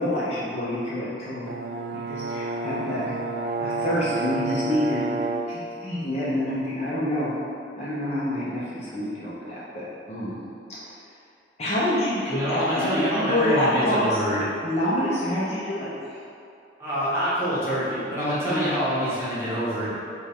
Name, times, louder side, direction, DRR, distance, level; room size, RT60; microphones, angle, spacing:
voice 1, 0.0-1.5 1.9-3.2 3.6-5.0 5.5-7.4 7.8-10.3 10.7-10.9 11.6-14.2 14.6-16.2 18.4-18.7, left 1 dB, 35° left, -8 dB, 0.6 m, -27 dB
Brass instrument, 1.5-5.6, right 3 dB, 55° right, 0.3 m, -29 dB
voice 2, 12.3-14.4 16.8-19.9, equal, 15° right, -12 dB, 1.1 m, -26 dB
5.1 x 2.3 x 3.5 m, 2.4 s
head